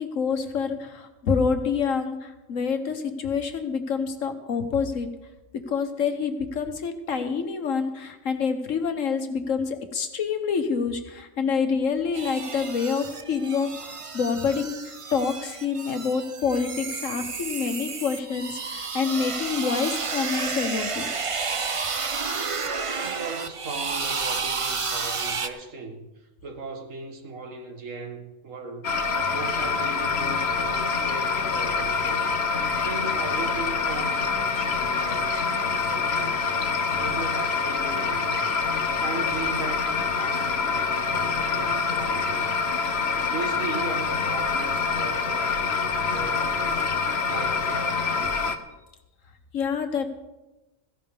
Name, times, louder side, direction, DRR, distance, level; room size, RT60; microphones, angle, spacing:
voice 1, 0.0-5.1 5.7-21.0 49.5-50.1, left 5 dB, 75° left, 7 dB, 1.6 m, -27 dB
sound 1, 12.1-25.5, right 4 dB, 35° right, 0.6 m, -31 dB
voice 2, 23.0-28.9 29.3-32.3 32.8-36.5 37.0-38.6 39.0-42.6 43.2-46.8 47.3-48.0, right 3 dB, 75° right, 4 dB, 1.8 m, -37 dB
sound 2, 28.8-48.6, left 5 dB, 55° left, 1.1 m, -26 dB
16.0 x 15.5 x 3.6 m, 1.0 s
omnidirectional pair, 1.4 m